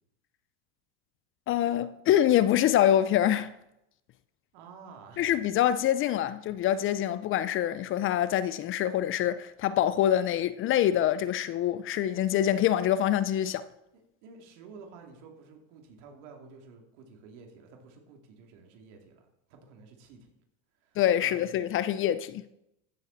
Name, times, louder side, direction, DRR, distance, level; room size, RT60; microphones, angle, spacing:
voice 1, 1.5-3.5 5.2-13.6 21.0-22.4, left 11 dB, 35° left, 0.5 m, -25 dB
voice 2, 4.5-5.3 14.2-20.3 20.8-21.6, right 4 dB, 70° right, 2.6 m, -51 dB
14.5 x 7.3 x 4.0 m
supercardioid pair, 115°, 37 cm